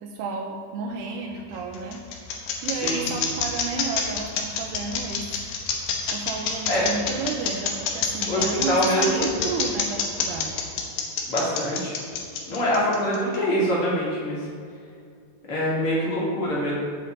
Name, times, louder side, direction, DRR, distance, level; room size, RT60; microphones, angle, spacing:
voice 1, 0.0-2.0 2.6-5.3 6.1-10.7, right 4 dB, 90° right, 1 dB, 2.3 m, -32 dB
sound 1, 1.3-13.4, left 7 dB, 80° left, 2.0 m, -27 dB
voice 2, 8.3-9.3 11.3-12.0 12.5-14.5 15.5-16.7, equal, 40° left, -6 dB, 2.4 m, -24 dB
15.5 x 5.8 x 3.9 m, 2.2 s
omnidirectional pair, 5.5 m